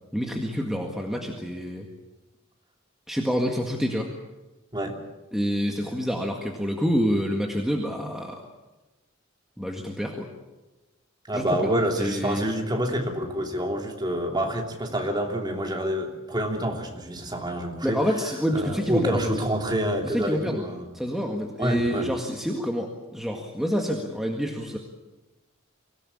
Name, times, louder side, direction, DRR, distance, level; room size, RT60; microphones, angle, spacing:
voice 1, 0.1-1.9 3.1-4.1 5.3-8.4 9.6-10.3 11.3-11.7 12.0-12.4 17.8-19.2 20.0-20.6 20.9-24.8, equal, ahead, 1 dB, 1.9 m, -27 dB
voice 2, 11.3-18.0 18.5-20.9 21.6-22.1, right 1 dB, 20° right, 2 dB, 3.0 m, -27 dB
24.5 x 17.0 x 8.7 m, 1.1 s
head